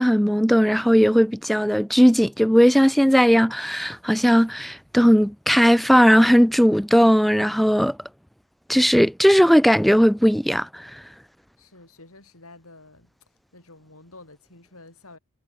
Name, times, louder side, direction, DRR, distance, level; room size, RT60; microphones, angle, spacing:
voice 1, 0.0-8.0 8.7-10.9, equal, ahead, 0.4 m, -17 dB
voice 2, 11.6-13.1 13.5-15.2, left 2 dB, 75° left, 7.4 m, -48 dB
head